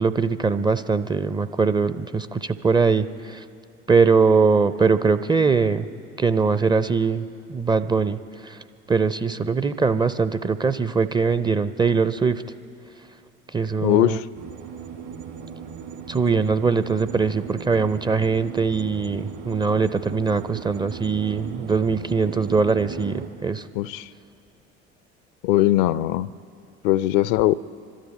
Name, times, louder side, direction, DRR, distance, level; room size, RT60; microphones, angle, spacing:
voice 1, 0.0-3.4 3.9-5.9 6.2-8.6 8.9-12.4 13.5-14.2 16.1-23.7, right 5 dB, 15° right, 13 dB, 0.4 m, -22 dB
voice 2, 13.8-14.3 23.8-24.1 25.4-26.3 26.8-27.6, left 15 dB, 55° left, 19 dB, 0.5 m, -20 dB
sound 1, 14.3-23.3, right 7 dB, 65° right, 2.0 m, -37 dB
25.0 x 13.0 x 4.2 m, 2.5 s
figure-of-eight pair, 65°, 33 cm